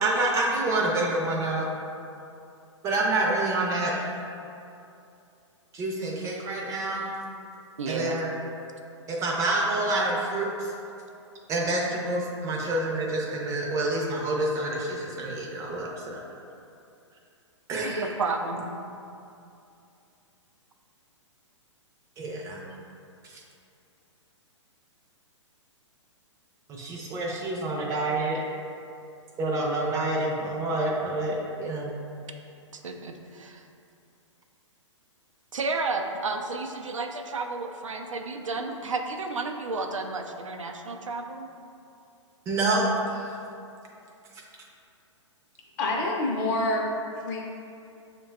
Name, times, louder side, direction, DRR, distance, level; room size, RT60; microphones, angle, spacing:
voice 1, 0.0-1.7 2.8-4.1 5.7-7.1 7.9-8.3 9.1-10.7 11.5-16.2 17.7-18.1 22.2-22.6 23.3-23.4 26.7-28.4 29.4-31.9 38.6-38.7 42.5-43.3, right 2 dB, 20° right, -2 dB, 0.5 m, -27 dB
voice 2, 7.8-8.2 17.8-18.7 32.7-33.6 35.5-41.5, right 3 dB, 80° right, 4 dB, 0.4 m, -32 dB
voice 3, 45.8-46.9 47.2-47.4, left 2 dB, 35° left, -1 dB, 0.6 m, -26 dB
6.6 x 2.2 x 2.3 m, 2.6 s
figure-of-eight pair, 115°, 16 cm